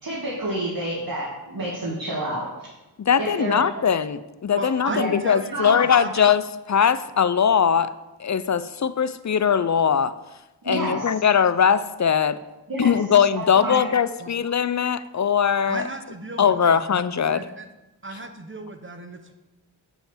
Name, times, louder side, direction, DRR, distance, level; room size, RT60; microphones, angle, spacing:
voice 1, 0.0-2.7 3.2-3.7 4.9-5.1 5.5-5.7 10.6-11.1 12.7-13.0 13.3-13.8, right 1 dB, 55° right, -6 dB, 2.3 m, -29 dB
voice 2, 3.0-6.4 6.7-7.9 8.2-10.1 10.7-12.4 12.8-15.8 16.4-17.4, left 7 dB, 40° left, 14 dB, 0.5 m, -20 dB
voice 3, 4.5-6.3 14.2-14.3 15.7-16.8 17.3-17.7 18.0-19.3, right 2 dB, 30° right, 6 dB, 0.9 m, -35 dB
7.0 x 5.7 x 7.4 m, 1.0 s
wide cardioid pair, 75°, 43 cm